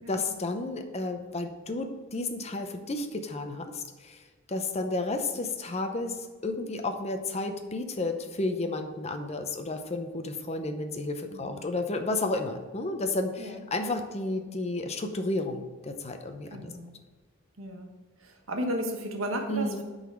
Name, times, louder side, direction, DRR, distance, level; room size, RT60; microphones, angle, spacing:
voice 1, 0.1-4.2 4.5-16.7 19.5-19.8, left 2 dB, 30° left, 6 dB, 0.7 m, -32 dB
voice 2, 16.5-16.9 17.6-17.9 18.2-19.8, equal, 80° right, 3 dB, 1.4 m, -34 dB
8.9 x 4.0 x 6.2 m, 1.3 s
head